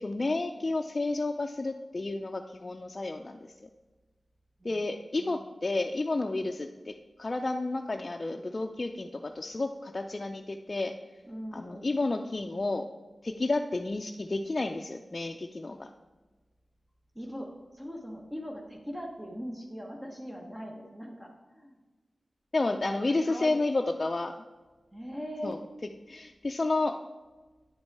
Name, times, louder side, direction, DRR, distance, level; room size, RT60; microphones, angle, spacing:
voice 1, 0.0-3.7 4.6-10.9 11.5-12.8 13.2-15.9 22.5-24.3 25.4-25.6 26.1-26.9, left 2 dB, 40° left, 4 dB, 0.4 m, -31 dB
voice 2, 11.3-12.0 17.1-21.8 23.1-23.6 24.9-25.6, equal, 15° right, 0 dB, 1.1 m, -41 dB
9.5 x 5.2 x 4.7 m, 1.3 s
cardioid pair, 60°, 0 cm